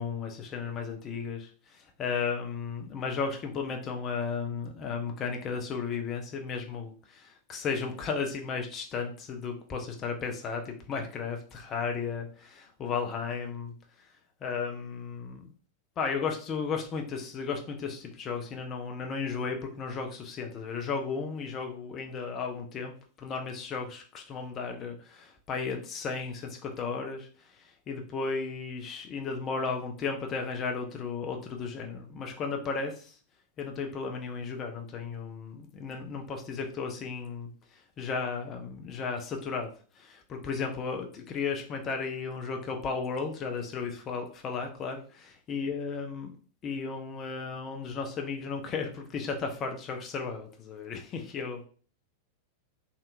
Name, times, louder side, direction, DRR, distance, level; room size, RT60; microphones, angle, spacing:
voice 1, 0.0-13.7 14.4-15.5 16.0-22.9 23.2-27.3 27.9-33.1 33.6-37.5 38.0-46.3 46.6-51.7, left 5 dB, 30° left, 3 dB, 0.7 m, -34 dB
3.4 x 2.7 x 2.6 m, 0.41 s
figure-of-eight pair, 90°, 0 cm